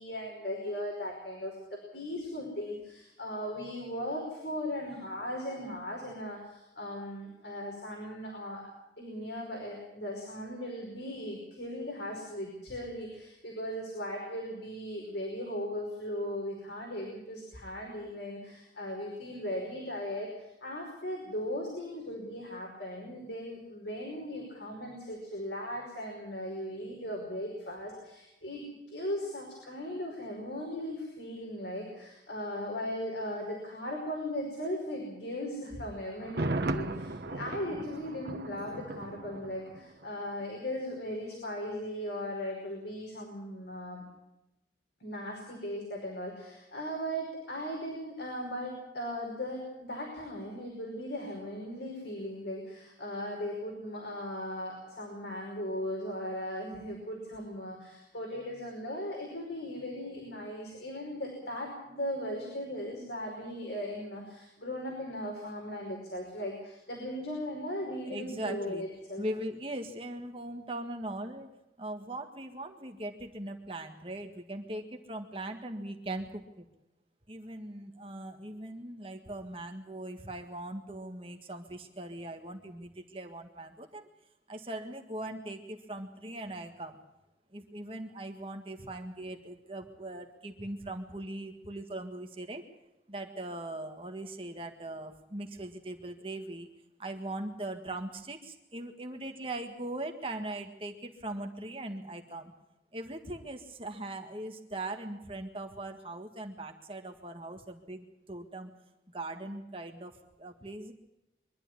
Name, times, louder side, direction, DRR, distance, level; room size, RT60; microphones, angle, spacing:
voice 1, 0.0-8.7 9.0-44.0 45.0-69.2, equal, 80° left, -1 dB, 5.3 m, -38 dB
Thunder, 36.2-40.1 40.4-40.5, right 2 dB, 70° right, 1.4 m, -36 dB
voice 2, 68.1-68.8 69.2-71.5 71.8-76.7 77.3-84.1 84.5-87.0 87.5-92.6 93.1-96.7 97.0-102.5 102.9-108.7 109.1-110.9, right 1 dB, 30° right, 4 dB, 1.7 m, -40 dB
23.5 x 12.0 x 9.7 m, 0.92 s
head